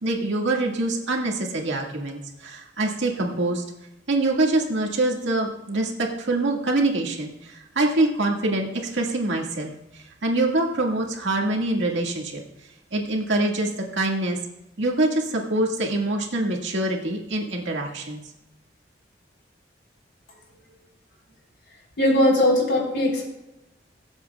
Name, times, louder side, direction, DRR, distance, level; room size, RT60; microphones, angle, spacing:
voice 1, 0.0-3.6 4.1-12.4 12.9-14.4 14.8-18.2, right 2 dB, 85° right, 0 dB, 1.9 m, -25 dB
voice 2, 22.0-23.2, left 1 dB, 65° left, -1 dB, 3.7 m, -19 dB
22.5 x 7.9 x 2.4 m, 0.95 s
head